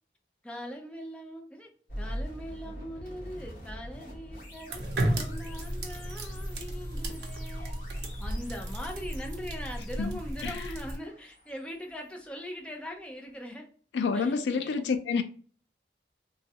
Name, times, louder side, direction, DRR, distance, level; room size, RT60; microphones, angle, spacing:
voice 1, 0.4-1.7 2.0-7.8 8.2-13.7 14.1-14.9, equal, 5° left, 0.4 m, -41 dB
sound 1, 1.9-12.9, equal, 45° left, 1.1 m, -45 dB
sound 2, 4.7-11.0, right 1 dB, 75° right, 0.6 m, -34 dB
voice 2, 13.9-15.2, left 5 dB, 85° left, 0.4 m, -28 dB
3.0 x 2.3 x 2.7 m
head